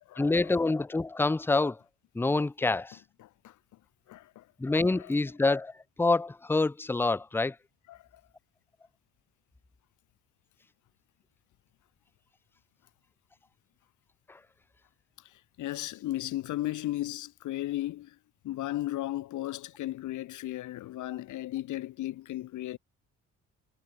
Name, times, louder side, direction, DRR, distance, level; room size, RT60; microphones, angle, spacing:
voice 1, 0.0-1.8 2.1-3.0 4.6-5.7 6.0-7.6, left 3 dB, 5° left, 0.5 m, -26 dB
voice 2, 3.2-3.5 4.1-4.4 5.0-5.1 7.9-8.0 15.6-18.1 18.4-22.8, left 15 dB, 80° left, 1.2 m, -35 dB
cardioid pair, 90°, 30 cm